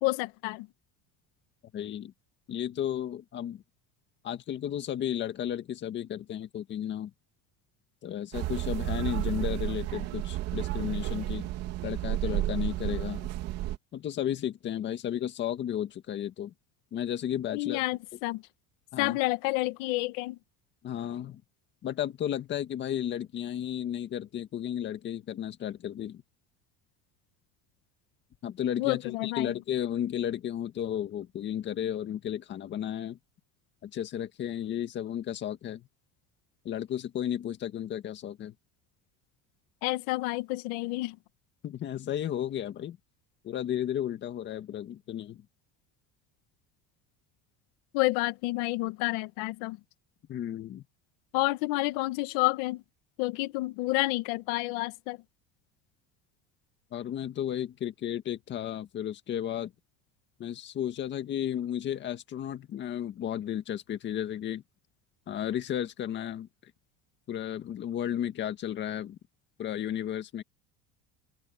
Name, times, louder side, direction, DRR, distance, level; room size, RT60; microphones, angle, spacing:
voice 1, 0.0-0.7 17.5-18.4 19.0-20.4 28.8-29.5 39.8-41.2 47.9-49.8 51.3-52.8 53.2-55.2, left 21 dB, 85° left, 1.9 m, -29 dB
voice 2, 1.7-2.1 2.5-3.6 4.2-7.1 8.0-11.5 11.8-13.3 13.9-16.5 16.9-17.8 18.9-19.2 20.8-21.4 21.8-26.2 28.4-33.2 33.8-35.9 36.6-38.5 41.6-43.0 43.4-45.4 50.3-50.8 56.9-59.7 60.4-64.6 65.3-66.5 67.3-69.2 69.6-70.4, left 10 dB, 35° left, 1.9 m, -33 dB
sound 1, 8.3-13.8, right 15 dB, 55° right, 3.4 m, -32 dB
open air
cardioid pair, 165°, 30 cm